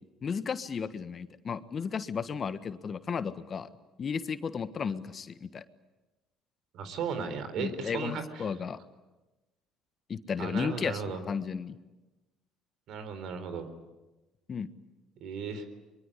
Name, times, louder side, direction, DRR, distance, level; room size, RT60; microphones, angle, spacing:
voice 1, 0.2-3.7 4.0-5.6 7.6-8.8 10.1-11.8 14.5-14.7, left 6 dB, 40° left, 12 dB, 1.4 m, -34 dB
voice 2, 6.7-8.5 10.4-11.2 12.9-13.7 15.2-15.7, right 5 dB, 65° right, 10 dB, 4.0 m, -36 dB
23.5 x 23.5 x 10.0 m, 1.1 s
supercardioid pair, 75°, 0 cm